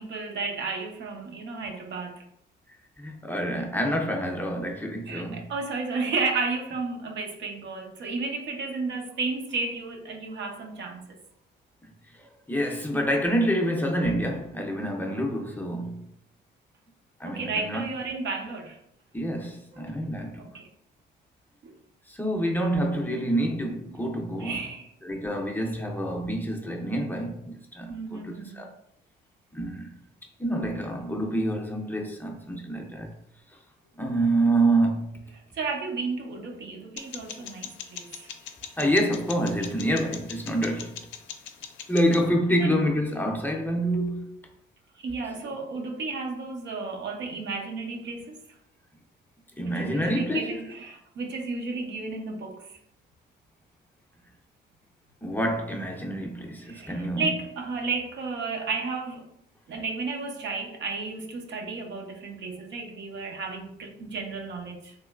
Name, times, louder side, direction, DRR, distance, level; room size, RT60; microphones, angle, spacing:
voice 1, 0.0-2.2 5.1-11.2 17.2-18.8 19.7-19.9 20.4-20.7 21.6-21.7 24.4-24.9 27.9-28.6 35.5-38.3 42.6-42.8 45.0-48.5 49.6-52.8 56.6-59.2 59.7-64.9, right 4 dB, 65° right, 0.6 m, -33 dB
voice 2, 3.0-5.5 12.5-16.0 17.2-17.9 19.1-20.5 22.1-24.6 25.0-28.7 29.5-29.9 30.4-33.1 34.0-35.1 38.8-41.0 41.9-44.3 49.6-50.6 55.2-57.2, right 1 dB, 10° left, 0.5 m, -27 dB
sound 1, 37.0-42.3, left 8 dB, 75° left, 0.4 m, -42 dB
3.1 x 2.9 x 2.3 m
cardioid pair, 90°, 20 cm